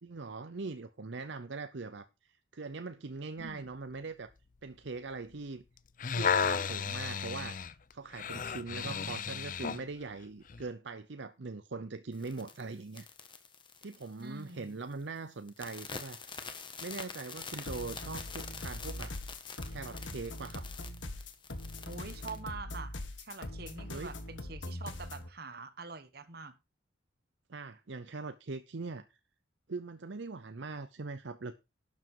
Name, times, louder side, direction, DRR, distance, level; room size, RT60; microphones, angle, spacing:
voice 1, 0.0-4.3 4.6-5.6 6.1-7.6 7.9-13.1 13.8-16.2 16.8-19.1 19.7-20.6 23.9-24.1 27.5-29.1 29.7-31.5, right 3 dB, 70° right, 0.7 m, -41 dB
voice 2, 3.4-3.7 8.8-9.2 14.2-14.8 21.8-26.5 27.7-27.8, right 3 dB, 55° right, 1.4 m, -45 dB
sound 1, 5.8-9.9 10.5-10.6, left 6 dB, 45° left, 0.5 m, -33 dB
sound 2, 12.1-14.6 14.9-15.2 15.5-22.4, left 5 dB, 25° left, 1.4 m, -46 dB
sound 3, 17.7-25.3, left 1 dB, 80° left, 1.9 m, -42 dB
12.0 x 7.4 x 4.7 m
head